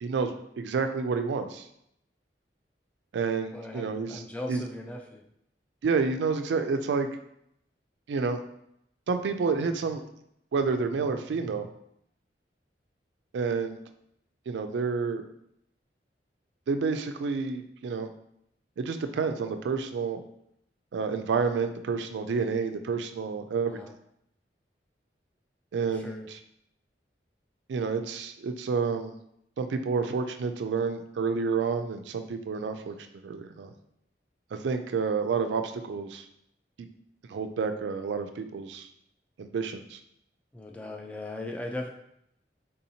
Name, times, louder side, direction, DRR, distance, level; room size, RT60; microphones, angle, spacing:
voice 1, 0.0-1.7 3.1-4.2 4.5-4.6 5.8-7.1 8.1-8.4 9.1-10.0 10.5-11.7 13.3-13.8 14.5-15.2 16.7-18.1 18.8-20.2 20.9-23.8 25.7-26.4 27.7-29.1 29.6-32.9 33.2-33.7 34.5-36.2 37.3-38.9 39.4-40.0, right 5 dB, 80° right, 8 dB, 0.3 m, -29 dB
voice 2, 3.5-5.2 23.7-23.9 25.9-26.3 40.5-41.9, left 2 dB, 10° left, 1 dB, 0.3 m, -38 dB
3.7 x 2.8 x 2.7 m, 0.74 s
head